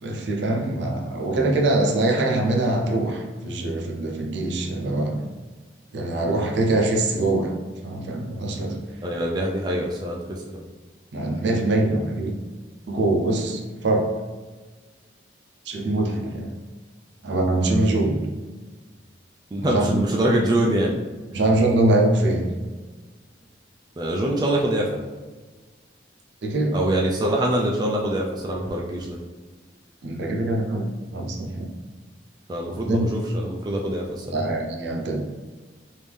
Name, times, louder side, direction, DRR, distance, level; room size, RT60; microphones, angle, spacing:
voice 1, 0.0-5.3 5.9-8.8 11.1-12.4 12.9-14.1 15.7-16.5 17.2-18.3 19.6-20.0 21.3-22.6 26.4-26.8 30.0-31.7 32.7-33.1 34.3-35.2, right 2 dB, 70° right, 1 dB, 0.6 m, -23 dB
voice 2, 9.0-10.6 19.5-21.0 24.0-25.0 26.7-29.2 32.5-34.5, right 1 dB, 20° right, -1 dB, 0.3 m, -24 dB
3.4 x 2.6 x 3.2 m, 1.3 s
head